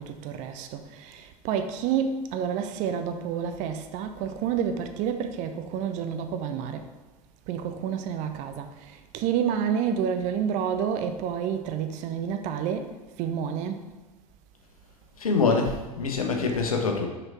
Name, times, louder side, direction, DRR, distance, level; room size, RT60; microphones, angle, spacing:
voice 1, 0.0-6.8 7.5-12.9 13.2-13.8, right 8 dB, 40° right, 7 dB, 0.7 m, -29 dB
voice 2, 15.2-17.1, left 4 dB, 70° left, 3 dB, 1.1 m, -25 dB
6.2 x 5.4 x 4.2 m, 1.2 s
figure-of-eight pair, 80°, 19 cm